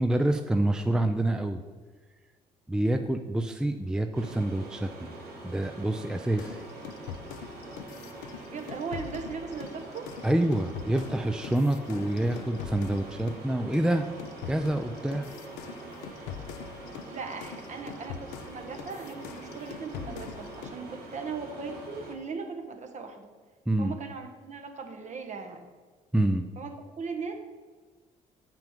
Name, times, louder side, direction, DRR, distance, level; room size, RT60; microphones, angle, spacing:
voice 1, 0.0-1.6 2.7-5.1 5.4-6.6 10.2-14.1 14.5-15.3 23.7-24.0 26.1-26.4, right 1 dB, 5° right, 7 dB, 0.5 m, -27 dB
sound 1, 4.1-22.1, right 2 dB, 75° right, 1.3 m, -44 dB
sound 2, 6.4-13.5 13.7-20.8, left 8 dB, 90° left, 0.5 m, -43 dB
voice 2, 8.5-10.1 17.0-23.3 23.8-25.7 26.6-27.3, right 5 dB, 45° right, 5 dB, 1.3 m, -38 dB
7.5 x 6.0 x 5.1 m, 1.4 s
supercardioid pair, 70°, 16 cm